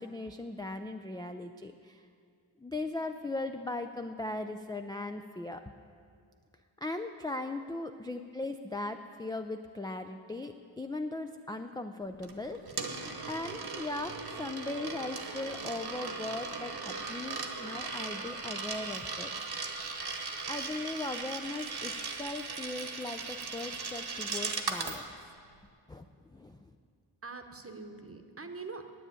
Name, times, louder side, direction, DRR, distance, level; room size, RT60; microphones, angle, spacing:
voice 1, 0.0-2.1 2.6-5.7 6.8-12.9 13.3-19.3 20.4-25.0 25.9-26.7, left 2 dB, 10° left, 6 dB, 0.3 m, -38 dB
Coin (dropping), 12.2-25.0, right 4 dB, 50° right, 1.2 m, -38 dB
voice 2, 27.2-28.9, right 4 dB, 30° right, 6 dB, 1.0 m, -44 dB
10.0 x 8.8 x 9.3 m, 2.2 s
wide cardioid pair, 110°, 48 cm